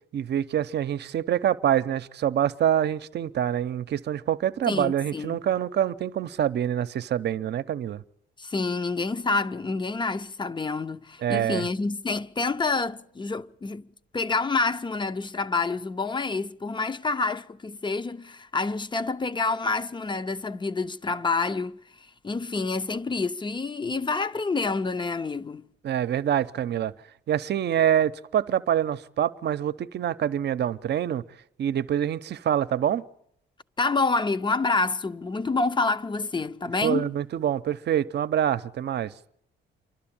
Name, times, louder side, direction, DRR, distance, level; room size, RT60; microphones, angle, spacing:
voice 1, 0.1-8.0 11.2-11.7 25.8-26.9 27.3-31.2 31.6-33.0 36.8-39.1, right 10 dB, 60° right, 0.8 m, -26 dB
voice 2, 4.7-5.4 8.4-13.9 14.1-21.8 22.2-25.6 33.8-37.1, left 3 dB, 25° left, 0.7 m, -28 dB
28.0 x 12.0 x 8.8 m
cardioid pair, 90°, 20 cm